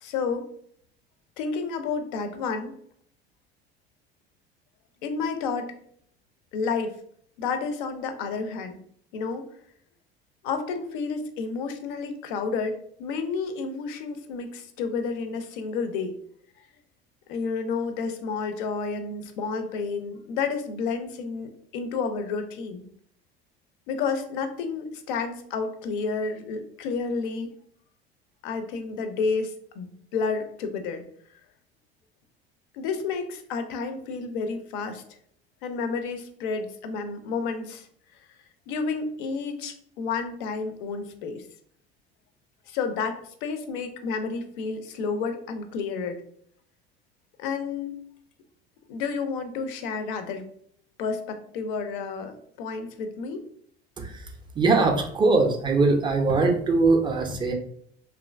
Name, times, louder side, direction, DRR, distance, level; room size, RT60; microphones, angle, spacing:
voice 1, 0.0-0.5 1.4-2.8 5.0-5.7 6.5-7.0 7.4-8.8 9.1-9.5 10.4-16.1 17.3-22.9 23.9-27.5 28.4-31.0 32.7-35.0 35.6-37.9 38.7-41.4 42.7-46.2 47.4-48.0 48.9-50.5 51.0-53.4, left 5 dB, 55° left, 8 dB, 0.5 m, -30 dB
voice 2, 54.6-57.5, right 3 dB, 15° right, 4 dB, 0.4 m, -21 dB
2.9 x 2.4 x 2.3 m, 0.64 s
figure-of-eight pair, 65°, 31 cm